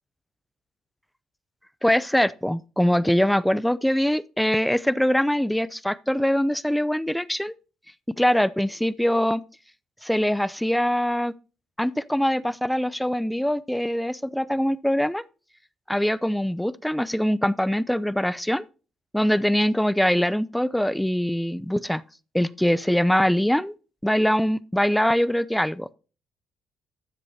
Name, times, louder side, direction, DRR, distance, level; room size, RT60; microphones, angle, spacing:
voice 1, 1.8-7.5 8.2-9.4 10.0-11.3 11.8-15.2 15.9-18.6 19.1-22.0 22.3-23.7 24.0-25.9, equal, 5° left, 0.5 m, -23 dB
13.0 x 7.6 x 2.8 m
supercardioid pair, 75°, 0 cm